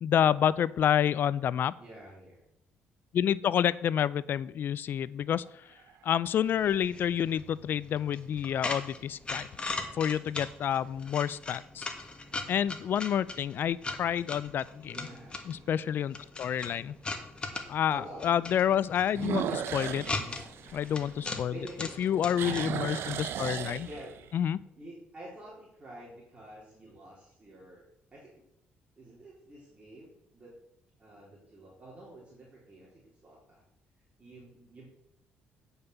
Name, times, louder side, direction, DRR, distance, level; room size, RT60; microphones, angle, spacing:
voice 1, 0.0-1.7 3.1-5.7 6.0-9.5 10.0-11.9 12.5-15.0 15.5-16.9 17.7-20.1 20.7-21.5 22.0-23.9 24.3-24.6, left 9 dB, 55° left, 19 dB, 0.4 m, -28 dB
voice 2, 1.8-2.4 9.6-9.9 14.9-15.4 17.9-18.3 20.2-20.4 21.5-22.7 23.8-24.2 24.7-27.8 28.1-28.4 29.0-30.5 31.0-33.6 34.2-34.9, right 1 dB, 30° right, -5 dB, 3.5 m, -48 dB
sound 1, 5.4-6.1 6.8-6.9 12.1-12.6 13.0-13.1 13.7-13.8 14.1-14.2 15.7-15.8 19.1-21.6 22.0-24.3, right 9 dB, 70° right, 0.8 m, -36 dB
sound 2, 6.4-22.7, left 3 dB, 25° left, 1.5 m, -40 dB
9.5 x 5.5 x 6.9 m, 0.80 s
cardioid pair, 95°, 4 cm